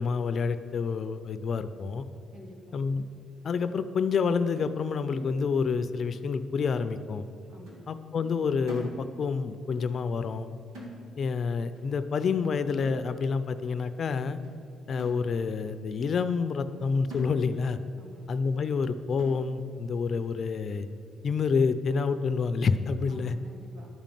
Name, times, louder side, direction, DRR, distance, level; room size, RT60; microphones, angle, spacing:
voice 1, 0.0-2.0 2.7-3.0 3.4-7.2 7.9-10.5 11.2-14.4 14.9-17.8 18.3-20.9 21.2-23.3, left 5 dB, 50° left, 12 dB, 0.5 m, -28 dB
voice 2, 2.3-2.8 7.5-7.8 17.9-18.3 23.1-23.9, equal, 65° right, -1 dB, 2.5 m, -49 dB
sound 1, 4.6-5.9 6.1-6.4 6.7-7.4 7.7-7.9 8.2-9.4 9.7-9.9 10.2-11.4 11.8-12.0 12.3-12.5 12.8-13.4 13.9-14.0 14.4-14.6 15.0-15.7 16.1-16.2 16.6-16.8 17.1-17.8 18.1-18.2 18.7-18.8 19.2-19.7 20.2-20.3 20.7-20.9, right 1 dB, 90° right, 2.3 m, -46 dB
11.5 x 5.2 x 7.5 m, 2.5 s
cardioid pair, 90°, 0 cm